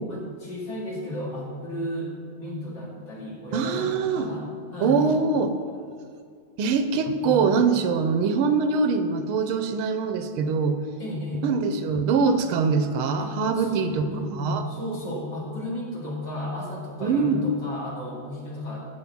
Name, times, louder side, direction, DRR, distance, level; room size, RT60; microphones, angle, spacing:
voice 1, 0.1-5.1 7.2-7.4 11.0-11.5 13.2-18.9, left 1 dB, 55° left, -3 dB, 2.9 m, -34 dB
voice 2, 3.5-4.3 4.8-5.5 6.6-10.8 11.4-14.1 14.4-14.6 17.0-17.4, right 5 dB, 85° right, 8 dB, 1.7 m, -23 dB
13.5 x 4.8 x 8.5 m, 2.1 s
omnidirectional pair, 2.3 m